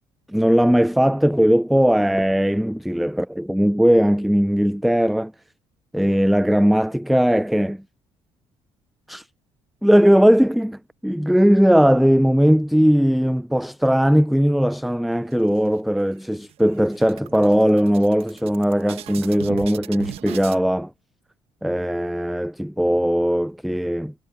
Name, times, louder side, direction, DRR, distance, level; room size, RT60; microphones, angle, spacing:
voice 1, 0.3-5.3 5.9-7.8 9.1-9.3 9.8-20.9 21.6-24.1, equal, ahead, 0.3 m, -18 dB
sound 1, 15.3-16.0 16.4-16.5 16.8-20.6, right 13 dB, 70° right, 1.1 m, -38 dB
cardioid pair, 90°, 10 cm